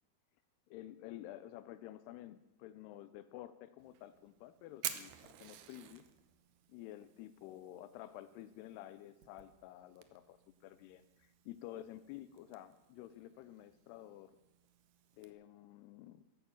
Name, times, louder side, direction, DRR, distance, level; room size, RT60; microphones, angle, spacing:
voice 1, 0.7-6.0 6.7-14.4 15.2-16.3, left 13 dB, 85° left, 12 dB, 2.7 m, -51 dB
Fire, 3.8-15.3, right 12 dB, 70° right, 2.1 m, -51 dB
14.5 x 11.5 x 7.1 m, 0.95 s
omnidirectional pair, 4.7 m